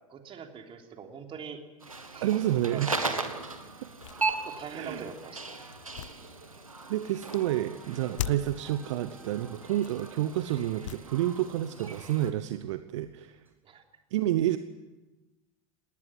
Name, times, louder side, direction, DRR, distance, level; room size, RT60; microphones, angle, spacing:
voice 1, 0.1-1.6 2.1-2.4 2.7-3.3 4.4-5.6 13.6-13.8, right 6 dB, 30° right, 4 dB, 3.4 m, -43 dB
sound 1, 1.8-12.3, right 3 dB, 90° right, 1.9 m, -38 dB
voice 2, 2.2-3.1 3.8-3.9 4.7-5.1 6.2-6.3 6.9-13.4 14.1-14.6, right 13 dB, 60° right, 12 dB, 0.9 m, -29 dB
sound 2, 3.0-3.1 3.8-5.2 5.7-6.8 7.3-7.5 8.1-8.7 9.7-10.2 10.8-11.3 11.7-12.9, left 13 dB, 65° left, 0.7 m, -41 dB
sound 3, 6.7-13.5, right 2 dB, 10° right, 6.9 m, -59 dB
19.5 x 19.0 x 9.7 m, 1.1 s
figure-of-eight pair, 80°, 17 cm